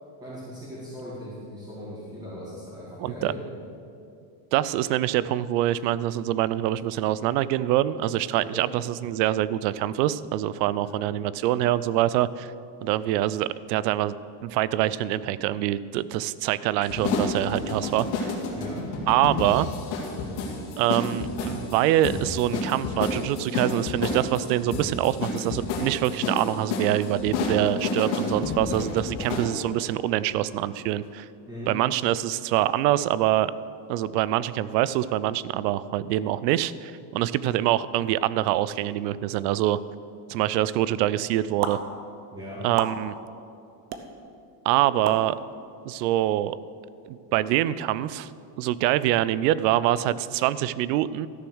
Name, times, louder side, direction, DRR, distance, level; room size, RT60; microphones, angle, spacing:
voice 1, 0.2-3.4 8.3-8.7 10.8-11.0 18.5-18.8 31.5-31.7 42.3-42.6, equal, 10° right, -10 dB, 2.1 m, -39 dB
voice 2, 3.0-3.3 4.5-12.5 12.8-14.1 14.4-18.3 19.1-19.7 20.8-31.3 31.7-33.5 33.9-39.8 40.3-41.8 42.6-43.1 44.6-45.4 45.9-46.6 47.1-48.3 48.6-51.3, right 13 dB, 75° right, 17 dB, 0.6 m, -25 dB
sound 1, 16.8-29.5, left 3 dB, 55° left, 2.3 m, -30 dB
sound 2, 41.6-41.7 42.8-42.9 43.9-44.0 45.1-45.2, right 8 dB, 35° right, 0.6 m, -29 dB
13.0 x 6.9 x 6.3 m, 2.5 s
cardioid pair, 170°, 50 cm